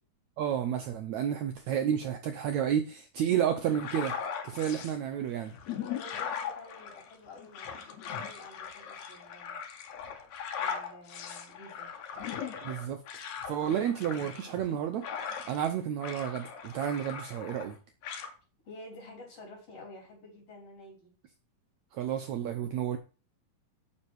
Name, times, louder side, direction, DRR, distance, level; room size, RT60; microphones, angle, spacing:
voice 1, 0.4-4.2 4.4-5.5 12.6-13.0 13.5-15.1 15.5-17.8 21.9-23.0, right 9 dB, 75° right, 6 dB, 1.8 m, -31 dB
sound 1, 3.7-5.0 5.5-15.7 16.0-17.7 18.0-18.3, left 7 dB, 65° left, 2.3 m, -39 dB
voice 2, 5.8-9.6 10.6-11.9 18.6-21.1, left 2 dB, 45° left, 0 dB, 4.5 m, -50 dB
7.5 x 6.2 x 6.3 m, 0.35 s
omnidirectional pair, 4.0 m